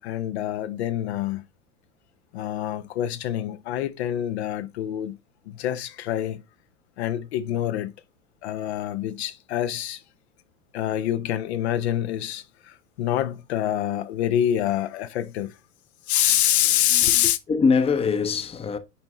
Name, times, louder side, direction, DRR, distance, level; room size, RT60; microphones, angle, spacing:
voice 1, 0.0-1.4 2.3-5.1 5.5-6.4 7.0-7.9 8.4-10.0 10.7-15.6 16.1-17.4, left 11 dB, 60° left, 0.8 m, -26 dB
voice 2, 16.9-18.8, left 5 dB, 15° left, 0.8 m, -23 dB
9.7 x 4.4 x 2.9 m
figure-of-eight pair, 80°, 37 cm